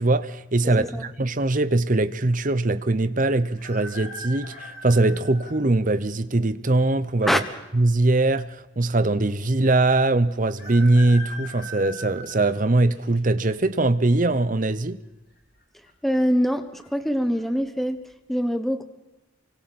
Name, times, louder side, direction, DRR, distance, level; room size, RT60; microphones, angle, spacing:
voice 1, 0.0-7.4 7.7-15.0, right 2 dB, 40° right, 0.9 m, -21 dB
voice 2, 0.6-1.1 7.2-7.4 16.0-18.0 18.3-18.8, equal, ahead, 1.2 m, -24 dB
sound 1, 3.6-5.6 6.3-6.4 7.5-8.1 8.4-8.5 8.7-8.8 10.6-13.2 13.7-14.1 15.3-15.6 15.9-16.0 16.5-16.9 17.3-17.5, equal, 50° left, 4.6 m, -40 dB
28.5 x 25.0 x 4.3 m
head